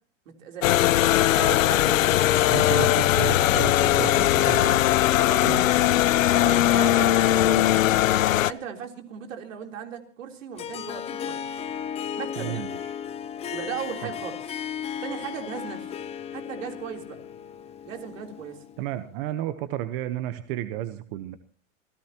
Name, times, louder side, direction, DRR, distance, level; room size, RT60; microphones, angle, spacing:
voice 1, 0.3-0.9 1.3-2.1 3.4-3.5 5.1-5.4 6.3-7.9 8.3-11.4 12.2-12.7 13.5-14.6 15.0-16.0 16.3-17.2 17.8-18.6, right 8 dB, 80° right, 3 dB, 3.7 m, -37 dB
sound 1, 0.6-8.5, left 13 dB, 90° left, 0.7 m, -20 dB
voice 2, 2.5-4.9 5.4-5.7 7.0-7.1 12.4-12.8 14.0-14.1 18.8-21.4, right 13 dB, 45° right, 10 dB, 1.1 m, -32 dB
Harp, 10.6-19.0, left 8 dB, 15° left, 0.8 m, -35 dB
26.5 x 15.5 x 3.0 m, 0.43 s
supercardioid pair, 145°, 38 cm